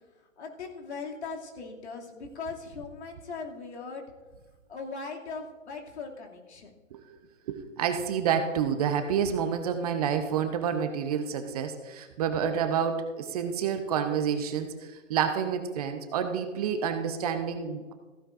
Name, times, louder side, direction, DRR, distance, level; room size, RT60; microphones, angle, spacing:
voice 1, 0.0-4.1 4.7-6.8, left 4 dB, 60° left, 0 dB, 2.6 m, -39 dB
voice 2, 7.5-17.9, right 7 dB, 30° right, 8 dB, 0.8 m, -29 dB
15.5 x 14.5 x 2.5 m, 1.4 s
figure-of-eight pair, 135°, 38 cm